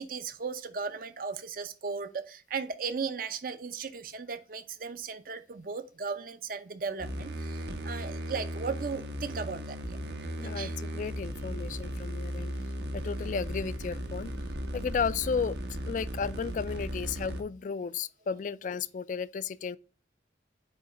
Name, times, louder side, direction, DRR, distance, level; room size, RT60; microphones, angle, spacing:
voice 1, 0.0-10.0 10.4-10.7, right 5 dB, 50° right, 0.6 m, -36 dB
sound 1, 7.0-17.4, equal, 70° right, 1.0 m, -36 dB
voice 2, 10.4-12.5 12.9-14.3 14.7-15.6 15.9-19.8, left 6 dB, 45° left, 0.3 m, -33 dB
8.7 x 3.1 x 3.7 m
head